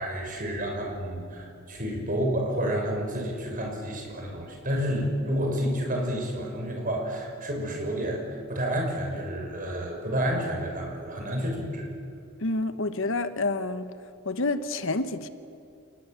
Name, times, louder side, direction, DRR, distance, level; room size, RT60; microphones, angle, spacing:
voice 1, 0.0-11.9, equal, 40° right, 1 dB, 6.3 m, -30 dB
voice 2, 12.4-13.9 14.2-15.3, left 2 dB, 65° left, 11 dB, 1.2 m, -28 dB
28.5 x 19.5 x 8.1 m, 2.6 s
head